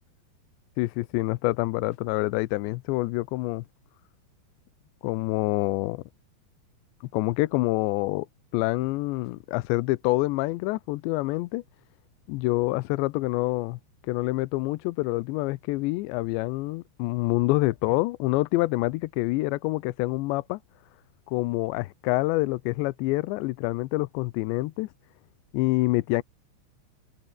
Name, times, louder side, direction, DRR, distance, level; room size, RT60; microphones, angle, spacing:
voice 1, 0.8-3.6 5.0-6.0 7.1-8.3 8.5-11.6 12.3-13.8 14.1-20.6 21.3-24.9 25.5-26.2, left 21 dB, 85° left, 2.9 m, -26 dB
omnidirectional pair, 5.2 m